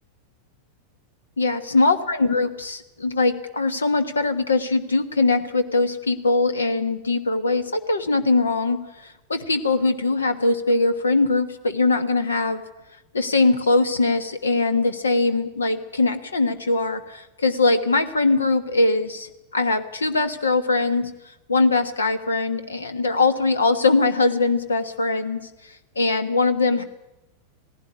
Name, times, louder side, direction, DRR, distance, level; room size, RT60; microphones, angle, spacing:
voice 1, 1.4-12.6 13.1-21.1 21.5-25.4 25.9-26.8, left 3 dB, 75° left, 11 dB, 1.3 m, -21 dB
17.5 x 16.0 x 10.0 m, 0.97 s
figure-of-eight pair, 90°, 0 cm